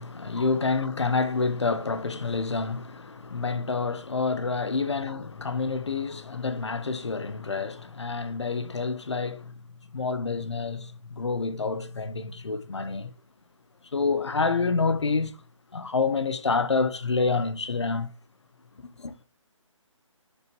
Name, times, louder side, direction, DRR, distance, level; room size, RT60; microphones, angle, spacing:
voice 1, 0.0-9.6 9.9-13.1 13.9-15.4 15.7-18.1 18.8-19.1, left 4 dB, 55° left, 1.1 m, -28 dB
12.0 x 6.6 x 3.1 m
hypercardioid pair, 180°, 17 cm